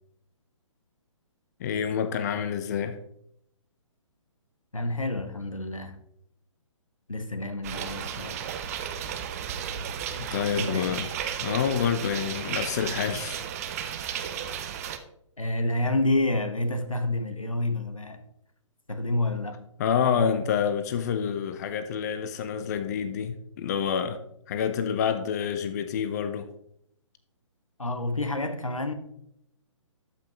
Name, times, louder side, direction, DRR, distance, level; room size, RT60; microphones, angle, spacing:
voice 1, 1.6-3.0 10.2-11.1 11.4-13.4 19.8-24.2 24.5-26.5, left 7 dB, 30° left, 0.6 m, -28 dB
voice 2, 4.7-6.0 7.1-8.4 10.5-11.0 15.4-18.2 18.9-19.7 27.8-28.9, left 2 dB, 85° left, 1.0 m, -29 dB
sound 1, 7.6-15.0, right 8 dB, 30° right, 0.6 m, -34 dB
13.0 x 5.8 x 3.0 m
figure-of-eight pair, 130°, 17 cm